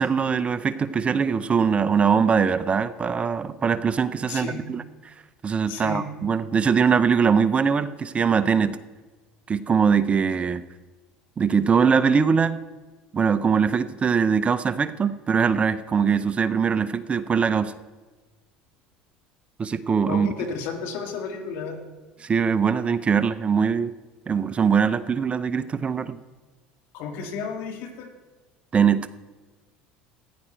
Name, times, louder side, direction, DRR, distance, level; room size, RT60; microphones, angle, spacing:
voice 1, 0.0-4.8 5.4-8.8 9.5-10.6 11.4-12.6 13.1-17.7 19.6-20.3 22.2-23.9 24.3-26.2 28.7-29.1, right 6 dB, 30° right, 14 dB, 0.6 m, -22 dB
voice 2, 4.3-4.6 5.7-6.1 20.1-21.8 26.9-28.1, left 5 dB, 65° left, 4 dB, 2.0 m, -32 dB
14.5 x 9.9 x 4.5 m, 1.3 s
hypercardioid pair, 75°, 4 cm